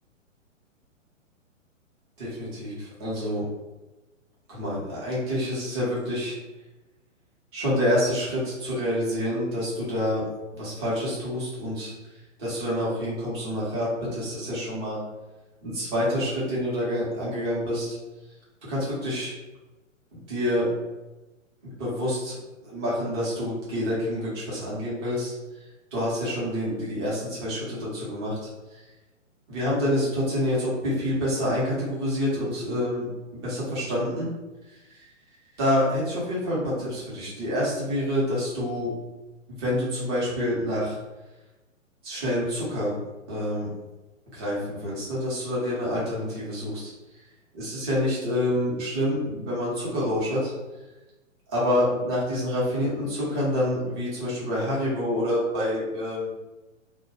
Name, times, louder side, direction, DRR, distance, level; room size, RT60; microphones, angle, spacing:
voice 1, 2.2-3.4 4.5-6.4 7.5-10.2 10.5-11.9 12.4-15.0 15.6-18.0 18.7-19.3 20.1-20.7 21.8-22.3 22.6-25.3 25.9-28.8 29.5-33.1 33.3-34.3 34.9-35.0 35.6-38.9 39.5-41.0 42.0-42.9 43.3-43.7 44.3-46.9 47.5-50.5 51.5-56.3, equal, 20° right, -7 dB, 0.7 m, -27 dB
2.1 x 2.1 x 2.9 m, 1.1 s
figure-of-eight pair, 125°, 39 cm